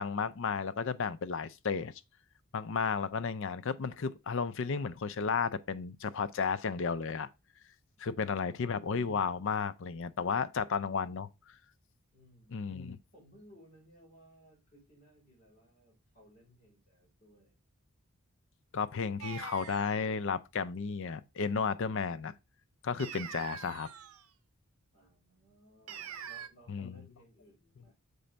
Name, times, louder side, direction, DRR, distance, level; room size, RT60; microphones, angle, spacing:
voice 1, 0.0-2.0 2.5-7.3 8.0-11.5 12.5-13.0 18.7-22.3 22.8-23.9 26.7-27.0, left 5 dB, 60° left, 0.5 m, -33 dB
voice 2, 12.1-12.6 13.1-17.6 24.9-28.0, equal, 35° left, 4.9 m, -61 dB
sound 1, 19.2-20.1 23.0-24.3 25.9-26.5, right 8 dB, 80° right, 0.7 m, -44 dB
6.8 x 4.3 x 5.1 m
head